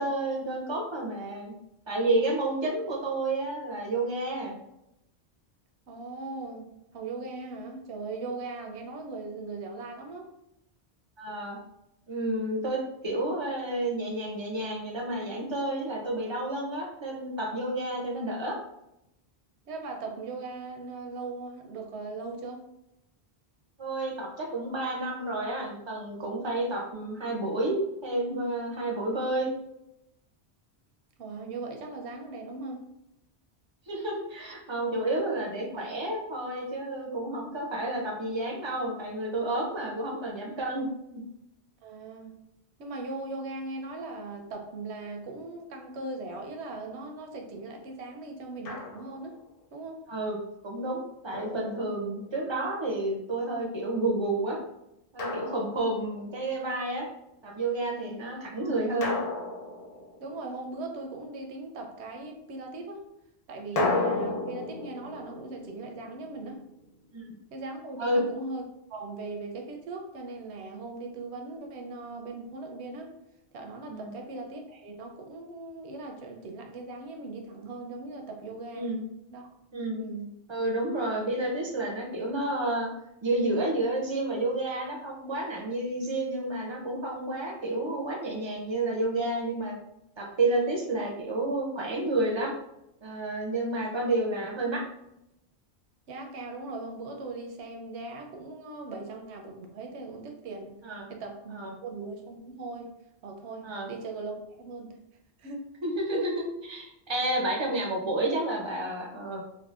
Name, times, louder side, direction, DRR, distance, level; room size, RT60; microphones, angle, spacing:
voice 1, 0.0-1.5 1.9-4.6 11.2-11.6 12.1-18.6 23.8-29.5 33.9-40.9 41.1-41.2 50.1-50.4 50.6-54.6 55.1-57.1 57.4-59.1 67.1-67.3 68.0-68.2 73.9-74.1 78.7-79.0 79.7-80.1 80.5-82.9 83.2-89.7 90.2-92.5 93.0-94.8 100.8-101.1 101.5-101.7 103.6-103.9 105.8-106.4 106.7-109.4, right 2 dB, 40° right, 0 dB, 0.4 m, -30 dB
voice 2, 5.9-10.3 19.7-22.7 31.2-32.8 41.8-42.3 42.8-49.4 49.7-50.0 57.9-58.2 60.2-63.0 63.5-66.6 67.5-68.6 68.9-73.2 73.5-78.9 79.3-79.5 80.0-80.3 96.1-100.8 101.1-102.9 103.2-105.0 105.4-105.7 106.1-106.3, right 3 dB, 80° right, 3 dB, 0.9 m, -39 dB
Drum, 48.6-49.3 51.3-52.4 55.2-56.3 59.0-60.7 63.8-66.7, left 2 dB, 55° left, 0.4 m, -33 dB
3.7 x 2.1 x 2.3 m, 0.84 s
omnidirectional pair, 1.1 m